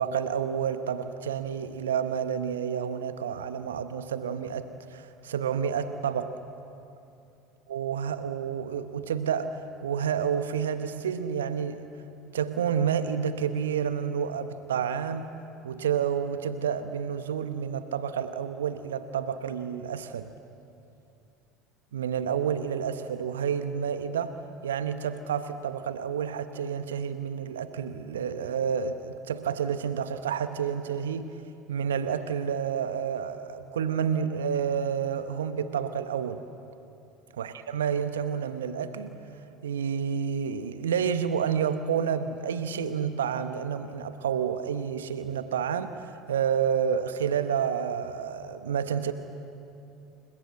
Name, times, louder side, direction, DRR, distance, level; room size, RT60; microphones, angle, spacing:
voice 1, 0.0-6.3 7.7-11.9 12.3-15.3 15.6-20.3 21.9-24.4 24.6-31.3 31.7-36.4 37.3-39.2 39.6-49.1, right 7 dB, 75° right, 11 dB, 1.0 m, -29 dB
29.0 x 22.0 x 7.8 m, 2.7 s
figure-of-eight pair, 70°, 0 cm